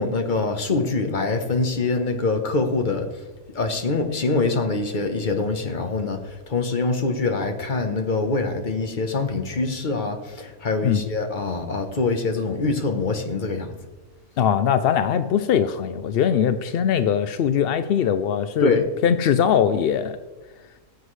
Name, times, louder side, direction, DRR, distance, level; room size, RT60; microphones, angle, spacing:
voice 1, 0.0-3.1 3.5-13.8 18.6-18.9, left 3 dB, 35° left, 6 dB, 1.1 m, -24 dB
voice 2, 14.4-18.7 19.0-20.2, left 8 dB, 70° left, 10 dB, 0.5 m, -21 dB
17.5 x 8.1 x 3.2 m, 1.2 s
omnidirectional pair, 1.5 m